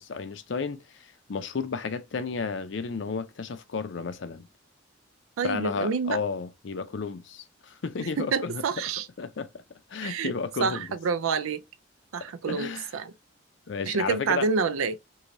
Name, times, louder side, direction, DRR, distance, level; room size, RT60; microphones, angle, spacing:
voice 1, 0.0-4.5 5.4-8.6 9.2-9.6 9.9-10.9 12.5-12.9 13.7-14.5, left 5 dB, 60° left, 0.5 m, -32 dB
voice 2, 5.4-6.2 8.2-9.1 10.0-10.3 10.6-11.6 12.1-13.1 13.9-15.0, right 5 dB, 85° right, 0.4 m, -28 dB
3.1 x 2.7 x 2.6 m
head